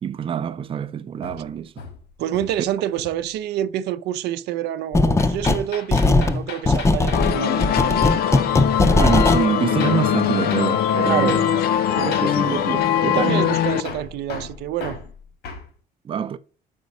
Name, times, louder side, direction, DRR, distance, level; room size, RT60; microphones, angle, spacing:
voice 1, 0.0-1.7 8.8-11.5 11.9-13.5 16.0-16.4, right 8 dB, 30° right, 0.5 m, -25 dB
Hammer, 1.2-2.7 3.0-3.3 5.2-7.3 9.8-10.0 10.5-10.7 11.3-11.5 12.1-12.4 13.8-15.7, left 5 dB, 85° left, 2.1 m, -36 dB
voice 2, 2.2-8.1 11.0-11.3 13.1-15.0, right 12 dB, 80° right, 0.6 m, -27 dB
sound 1, 4.9-5.6 5.9-9.4, left 2 dB, 15° left, 0.5 m, -18 dB
sound 2, 7.1-13.8, left 10 dB, 70° left, 0.7 m, -21 dB
6.0 x 5.2 x 5.3 m
cardioid pair, 110°, 17 cm